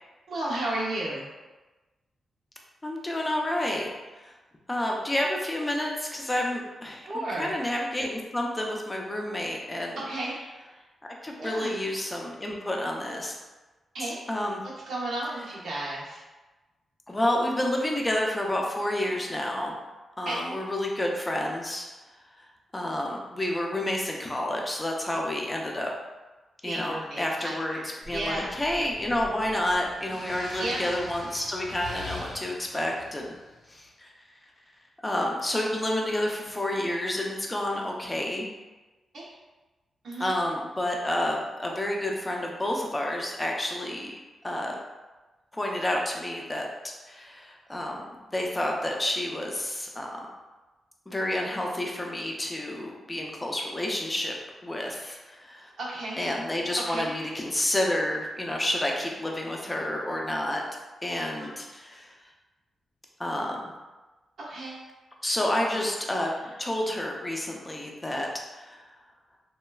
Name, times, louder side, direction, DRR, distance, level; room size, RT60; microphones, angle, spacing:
voice 1, 0.3-1.3 7.1-7.5 10.0-10.8 11.4-11.8 13.9-14.2 14.9-16.2 20.2-20.4 26.6-28.5 30.6-30.9 39.1-39.3 40.0-40.4 55.8-56.2 56.8-57.2 64.4-64.9 65.7-65.8, right 1 dB, 70° right, -5 dB, 0.7 m, -33 dB
voice 2, 2.8-4.3 4.7-10.0 11.2-13.4 14.0-14.6 17.1-19.8 20.2-21.9 22.7-25.9 26.6-27.8 28.1-33.3 33.7-34.1 35.0-38.5 40.2-44.2 44.4-44.8 45.5-46.7 47.1-48.0 48.3-50.2 51.1-54.3 54.6-55.7 56.2-60.6 61.0-62.2 63.2-63.6 65.2-68.3 68.5-68.8, left 1 dB, 15° left, 0 dB, 0.4 m, -29 dB
sound 1, 28.0-33.7, left 2 dB, 65° left, 0.6 m, -43 dB
3.0 x 2.2 x 2.3 m, 1.2 s
cardioid pair, 100°, 0 cm